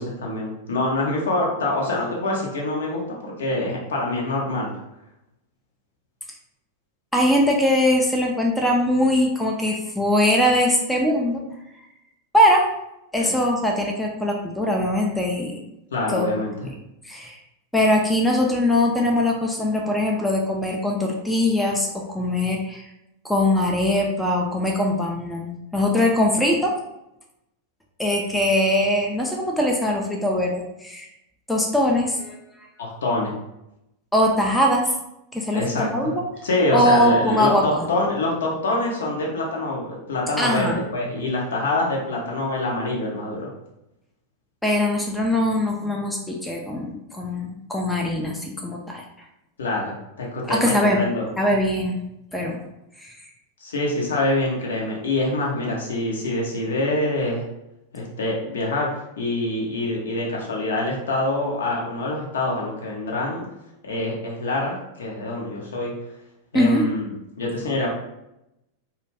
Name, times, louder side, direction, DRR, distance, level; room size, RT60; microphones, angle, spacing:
voice 1, 0.0-4.7 13.2-13.3 15.9-16.7 32.8-33.3 35.5-36.1 36.4-43.5 49.6-51.3 53.6-57.4 57.9-58.9 59.2-63.4 63.8-65.9 66.5-67.9, left 2 dB, 65° left, -2 dB, 0.7 m, -25 dB
voice 2, 7.1-11.4 12.3-12.6 13.1-15.6 16.1-16.4 17.0-17.4 17.7-22.8 23.2-26.7 28.0-31.1 31.5-32.4 34.1-34.9 35.3-36.1 36.7-37.9 40.4-40.8 44.6-49.0 50.5-51.0 51.4-52.0 52.3-52.6 53.0-53.1 66.5-66.9, left 1 dB, 5° left, 0 dB, 0.4 m, -21 dB
2.3 x 2.3 x 3.2 m, 0.86 s
figure-of-eight pair, 90°, 0 cm